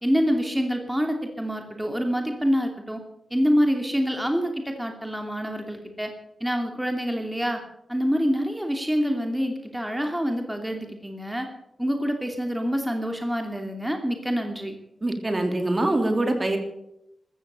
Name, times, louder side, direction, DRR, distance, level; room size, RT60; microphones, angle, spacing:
voice 1, 0.0-3.0 3.3-6.1 6.4-7.6 7.9-11.5 11.8-14.8, equal, 5° right, 3 dB, 2.8 m, -26 dB
voice 2, 15.0-16.6, right 2 dB, 35° right, 5 dB, 3.4 m, -24 dB
14.5 x 14.0 x 6.9 m, 0.83 s
cardioid pair, 60°, 0 cm